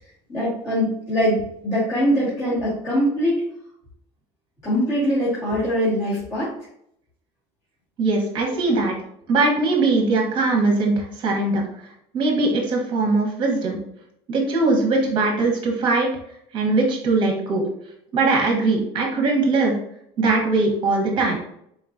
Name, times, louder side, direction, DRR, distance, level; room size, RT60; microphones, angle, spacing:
voice 1, 0.3-3.4 4.6-6.5, equal, 25° left, -12 dB, 1.7 m, -22 dB
voice 2, 8.0-8.9 9.3-11.6 12.1-13.8 14.3-16.1 16.5-17.6 18.1-19.7 20.2-21.4, right 3 dB, 40° right, 1 dB, 1.0 m, -20 dB
4.3 x 3.7 x 2.6 m, 0.71 s
cardioid pair, 180°, 13 cm